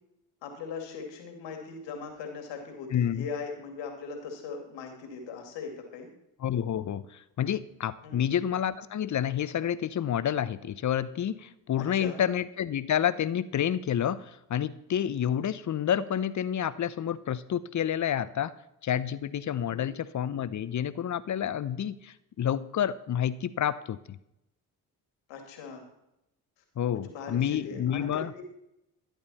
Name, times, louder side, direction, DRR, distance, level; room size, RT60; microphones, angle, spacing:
voice 1, 0.4-6.1 8.0-8.3 11.8-12.2 19.7-20.0 25.3-25.9 26.9-28.4, left 5 dB, 75° left, 4 dB, 2.4 m, -40 dB
voice 2, 2.9-3.3 6.4-18.5 18.8-24.2 26.8-28.3, left 9 dB, 40° left, 16 dB, 0.8 m, -29 dB
13.0 x 10.5 x 4.2 m, 0.85 s
hypercardioid pair, 45°, 44 cm